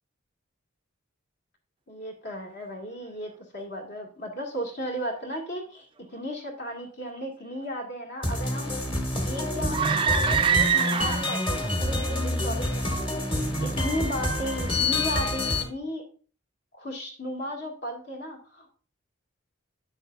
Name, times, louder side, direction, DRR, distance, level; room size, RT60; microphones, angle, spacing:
voice 1, 1.9-8.8 9.2-13.1 13.6-16.0 16.7-18.7, equal, 55° left, 1 dB, 1.9 m, -35 dB
sound 1, 8.2-15.6, left 1 dB, 25° left, 1.3 m, -27 dB
sound 2, 9.7-11.5, right 7 dB, 25° right, 0.4 m, -24 dB
9.3 x 7.0 x 2.5 m, 0.38 s
head